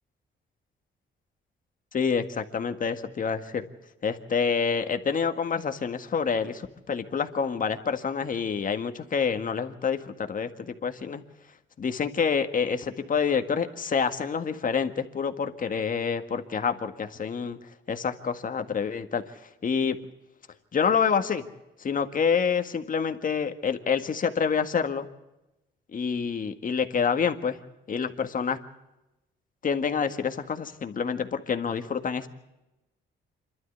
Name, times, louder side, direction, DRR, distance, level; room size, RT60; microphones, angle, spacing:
voice 1, 1.9-3.6 4.0-11.2 11.8-17.6 17.9-20.0 20.7-21.4 21.8-25.1 25.9-27.6 27.9-28.6 29.6-32.3, left 6 dB, 45° left, 8 dB, 1.8 m, -27 dB
27.0 x 12.5 x 8.1 m, 0.98 s
cardioid pair, 90°, 20 cm